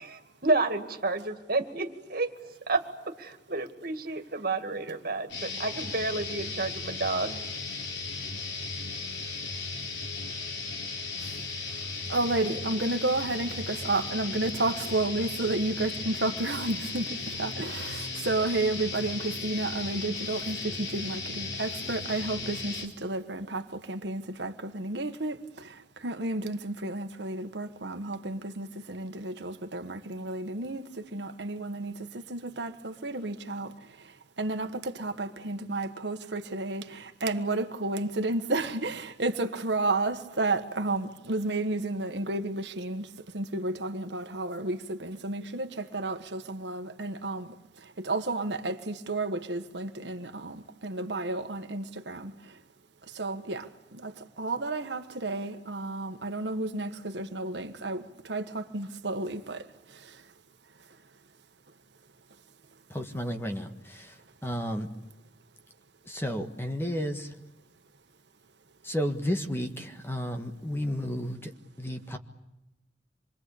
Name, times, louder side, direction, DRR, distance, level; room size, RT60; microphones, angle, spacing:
voice 1, 0.0-2.3 2.7-7.4, right 3 dB, 55° right, 7 dB, 2.3 m, -30 dB
sound 1, 5.3-22.9, left 3 dB, 80° left, 3.9 m, -36 dB
voice 2, 12.1-25.8 26.0-33.7 34.4-43.1 43.3-47.5 48.0-52.3 53.1-53.7 53.9-54.1 54.4-59.6, right 2 dB, 70° right, 7 dB, 1.5 m, -32 dB
voice 3, 62.9-63.7 64.4-64.9 66.1-67.3 68.8-71.4 71.8-72.2, equal, 15° left, 5 dB, 1.7 m, -32 dB
26.5 x 22.5 x 8.6 m, 0.97 s
head